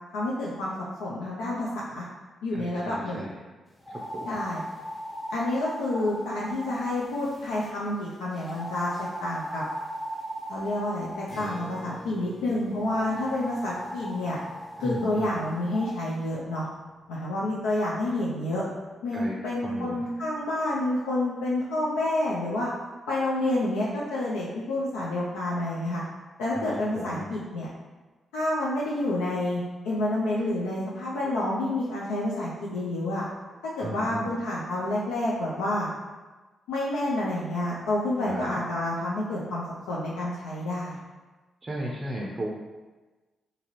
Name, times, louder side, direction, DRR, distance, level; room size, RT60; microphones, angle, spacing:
voice 1, 0.1-0.7 1.0-2.0 2.4-3.3 4.3-4.6 5.3-9.6 10.5-14.4 14.8-16.7 17.1-18.6 19.0-22.7 23.1-26.0 26.4-27.7 28.3-33.2 33.6-35.9 36.7-39.6 39.9-41.0, left 1 dB, 90° left, -6 dB, 0.4 m, -29 dB
voice 2, 2.5-3.3 3.9-4.3 14.8-15.4 19.1-19.4 19.6-20.1 26.5-26.7 26.9-27.3 33.8-34.3 38.3-38.6 41.6-42.5, right 1 dB, 35° right, -2 dB, 0.4 m, -35 dB
sound 1, 3.8-7.7 8.4-11.7 12.7-16.0, equal, 15° left, 0.7 m, -38 dB
Acoustic guitar, 11.3-16.8, equal, 65° left, 1.2 m, -48 dB
2.8 x 2.5 x 2.9 m, 1.2 s
supercardioid pair, 50°, 0 cm